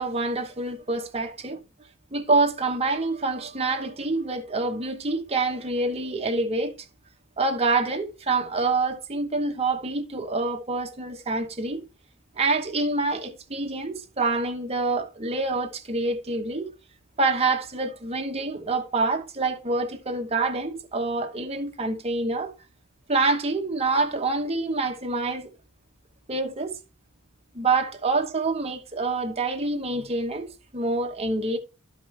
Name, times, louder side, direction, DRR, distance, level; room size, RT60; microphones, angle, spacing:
voice 1, 0.0-1.6 2.1-6.7 7.4-11.8 12.4-16.7 17.2-22.5 23.1-25.5 26.3-26.8 27.5-31.6, right 3 dB, 30° right, 1.0 m, -26 dB
12.0 x 5.2 x 3.3 m
head